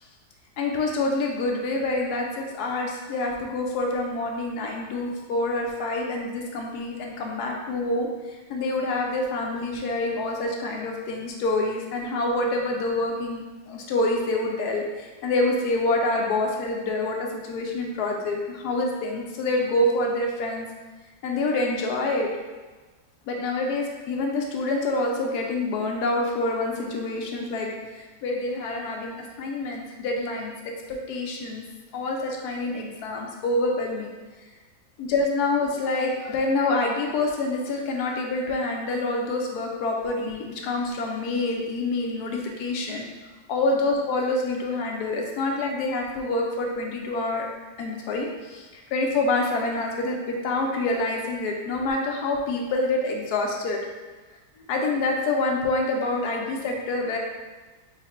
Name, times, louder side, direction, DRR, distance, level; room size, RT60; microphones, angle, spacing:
voice 1, 0.6-8.1 8.5-20.7 21.2-22.3 23.3-31.6 31.9-34.1 35.0-43.1 43.5-47.5 47.8-53.8 54.7-57.2, left 2 dB, 70° left, 0 dB, 1.0 m, -27 dB
4.0 x 2.1 x 4.2 m, 1.3 s
omnidirectional pair, 2.0 m